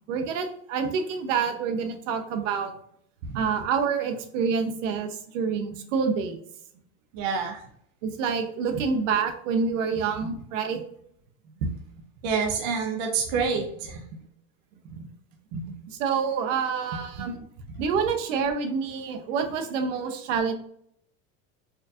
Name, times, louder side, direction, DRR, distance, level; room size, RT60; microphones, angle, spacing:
voice 1, 0.1-2.7 3.3-6.4 8.0-10.8 14.9-15.0 15.9-17.4 17.8-20.5, right 6 dB, 65° right, 6 dB, 0.7 m, -27 dB
voice 2, 7.1-7.6 8.7-8.8 10.2-10.3 11.6-11.7 12.2-14.0 15.5-15.7, right 5 dB, 40° right, 2 dB, 0.4 m, -28 dB
4.5 x 2.4 x 2.6 m, 0.67 s
supercardioid pair, 175°, 42 cm